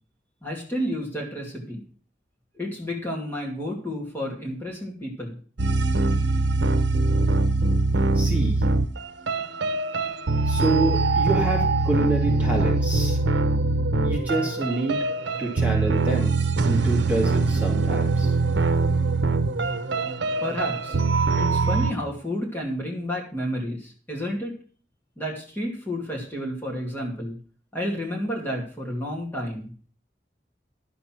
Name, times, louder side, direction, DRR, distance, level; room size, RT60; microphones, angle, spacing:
voice 1, 0.4-1.8 2.5-5.3 20.4-21.0 21.4-24.5 25.2-27.4 27.7-29.7, equal, 10° left, -2 dB, 2.4 m, -31 dB
sound 1, 5.6-21.9, right 3 dB, 85° right, 0.8 m, -23 dB
voice 2, 8.1-8.6 10.4-13.2 14.0-15.0 15.4-16.3 16.6-18.3, right 2 dB, 10° right, -2 dB, 2.4 m, -27 dB
11.5 x 7.0 x 6.0 m, 0.42 s
head